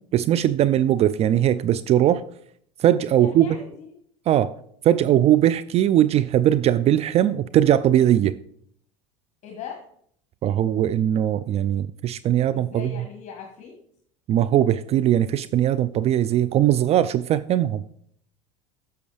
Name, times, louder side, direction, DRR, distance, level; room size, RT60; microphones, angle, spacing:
voice 1, 0.1-2.2 2.8-3.5 4.3-4.5 4.8-8.4 10.4-12.9 14.3-17.8, right 11 dB, 40° right, 15 dB, 0.4 m, -20 dB
voice 2, 3.1-4.0 9.4-9.9 12.5-13.8, left 7 dB, 50° left, 2 dB, 1.4 m, -39 dB
10.5 x 6.8 x 3.3 m, 0.64 s
hypercardioid pair, 85°, 16 cm